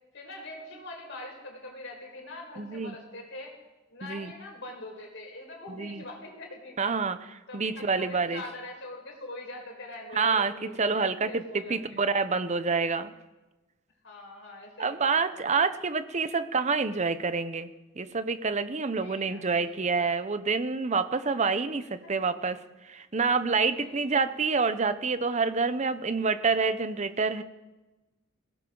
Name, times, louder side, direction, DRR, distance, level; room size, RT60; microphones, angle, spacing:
voice 1, 0.1-3.5 3.9-7.0 7.5-12.0 14.0-15.6 18.8-20.1 22.0-22.2 23.8-24.2, left 2 dB, 60° left, -1 dB, 4.9 m, -44 dB
voice 2, 2.6-2.9 4.0-4.3 5.8-6.0 6.8-8.4 10.1-10.5 10.8-13.1 14.8-17.7 18.0-22.6 22.9-27.4, right 4 dB, 35° right, 12 dB, 0.8 m, -27 dB
21.5 x 17.0 x 3.9 m, 1.1 s
head